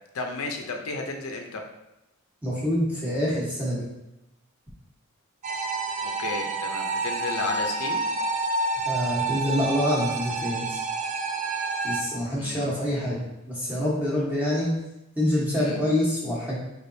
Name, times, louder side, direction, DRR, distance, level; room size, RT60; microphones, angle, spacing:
voice 1, 0.1-1.6 6.0-8.0 12.4-13.1 15.5-15.8, left 3 dB, 75° left, 3 dB, 0.5 m, -33 dB
voice 2, 2.4-3.8 8.8-10.8 11.8-14.7 15.2-16.6, left 1 dB, 5° right, -7 dB, 1.0 m, -26 dB
sound 1, 5.4-12.0, right 3 dB, 30° right, 0.3 m, -29 dB
4.8 x 3.3 x 2.6 m, 0.92 s
head